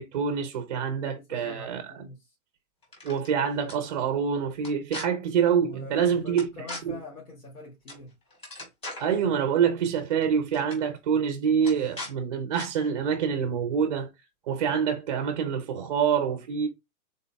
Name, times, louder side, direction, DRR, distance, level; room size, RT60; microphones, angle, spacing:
voice 1, 0.0-1.8 3.0-6.5 6.9-7.0 9.0-14.1 14.5-16.7, right 7 dB, 30° right, 0.4 m, -26 dB
voice 2, 1.0-2.4 5.6-8.1, left 2 dB, 80° left, 2.2 m, -44 dB
sound 1, 2.8-3.3 3.7-3.8 4.6-5.0 6.4-6.8 7.9-8.0 8.3-9.1 10.1-10.2 10.5-10.8 11.6-12.1 12.5-12.7, left 2 dB, 15° left, 1.7 m, -39 dB
3.8 x 3.7 x 2.2 m
hypercardioid pair, 150°, 43 cm